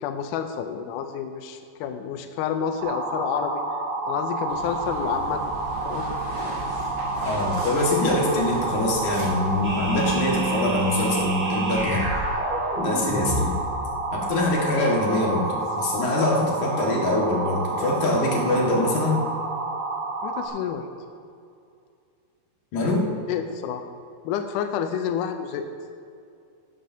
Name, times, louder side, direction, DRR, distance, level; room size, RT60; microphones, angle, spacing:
voice 1, 0.0-3.6 4.0-5.4 5.9-6.1 20.2-20.9 23.3-23.8 24.3-25.6, left 8 dB, 85° left, 6 dB, 1.8 m, -29 dB
sound 1, 2.8-20.5, right 2 dB, 90° right, 3.6 m, -29 dB
sound 2, 4.5-10.5, right 2 dB, 45° right, 4.5 m, -37 dB
voice 2, 7.3-12.1 12.8-13.5 14.1-19.2 22.7-23.1, left 2 dB, 55° left, -3 dB, 3.2 m, -24 dB
sound 3, 9.6-14.2, right 1 dB, 5° right, 1.1 m, -28 dB
15.5 x 12.5 x 2.8 m, 2.4 s
omnidirectional pair, 4.5 m